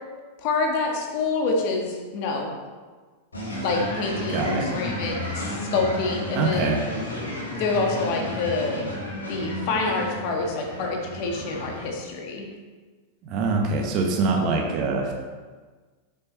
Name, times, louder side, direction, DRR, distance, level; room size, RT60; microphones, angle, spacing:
voice 1, 0.4-2.5 3.6-6.8 7.6-8.9 9.3-12.5, left 3 dB, 45° left, 1 dB, 1.7 m, -27 dB
sound 1, 3.3-11.9, left 1 dB, 75° left, 2.6 m, -32 dB
voice 2, 4.3-4.7 6.3-6.8 13.2-15.1, right 3 dB, 40° right, 1 dB, 1.5 m, -24 dB
8.4 x 6.5 x 4.3 m, 1.4 s
figure-of-eight pair, 90°, 0 cm